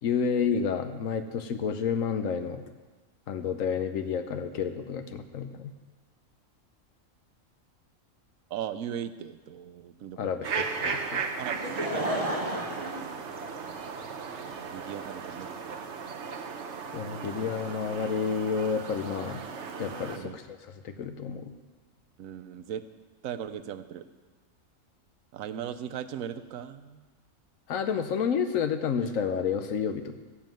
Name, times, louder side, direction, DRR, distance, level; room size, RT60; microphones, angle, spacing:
voice 1, 0.0-2.6 3.3-5.7 10.2-11.2 16.9-19.4 19.8-20.6 20.8-21.5 27.7-30.2, left 6 dB, 80° left, 8 dB, 1.1 m, -30 dB
voice 2, 8.5-10.3 11.4-12.4 14.0-15.8 16.1-16.2 17.2-17.5 20.2-20.4 22.2-22.8 23.2-24.1 25.3-27.0, right 9 dB, 80° right, 12 dB, 1.1 m, -38 dB
sound 1, 10.4-20.2, right 5 dB, 60° right, 1.2 m, -36 dB
Laughter / Crowd, 11.4-14.0 14.7-14.8, right 1 dB, 25° right, 1.2 m, -32 dB
15.0 x 7.3 x 7.7 m, 1.3 s
omnidirectional pair, 1.4 m